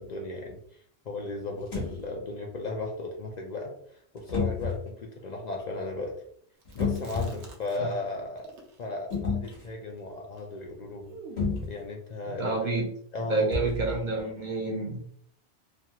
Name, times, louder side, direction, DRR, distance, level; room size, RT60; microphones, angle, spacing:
voice 1, 0.0-6.2 6.7-8.5 8.8-11.2 11.6-12.7 13.1-13.8, left 2 dB, 60° left, 1 dB, 0.5 m, -36 dB
sound 1, 1.6-2.0 4.3-4.8 6.7-7.5 9.1-9.7 11.4-11.8 13.5-14.0, left 5 dB, 75° left, 1.3 m, -30 dB
Chewing mastication, 6.6-8.1 8.4-11.8, right 3 dB, 85° right, 1.0 m, -49 dB
voice 2, 12.2-12.9 13.3-15.0, right 3 dB, 55° right, -1 dB, 0.6 m, -29 dB
3.1 x 2.3 x 2.7 m, 0.65 s
omnidirectional pair, 1.1 m